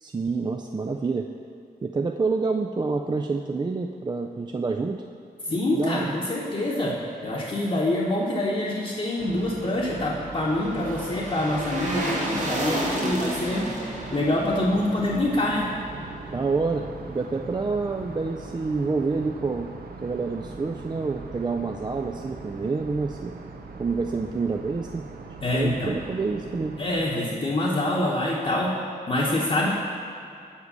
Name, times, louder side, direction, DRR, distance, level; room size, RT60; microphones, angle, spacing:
voice 1, 0.0-1.3 1.8-5.0 5.5-6.1 16.3-19.7 20.0-23.3 23.8-25.1 25.5-26.8, right 4 dB, 25° right, 2 dB, 0.3 m, -28 dB
voice 2, 5.5-7.0 7.2-13.7 14.1-15.7 25.4-26.0 26.8-28.7 29.1-29.7, left 1 dB, 40° left, -6 dB, 1.0 m, -25 dB
sound 1, 9.2-16.4 16.7-16.8, right 1 dB, 50° right, 1.4 m, -33 dB
sound 2, 9.2-27.0, right 4 dB, 70° right, 0.7 m, -40 dB
7.3 x 4.7 x 6.7 m, 2.4 s
wide cardioid pair, 100°, 16 cm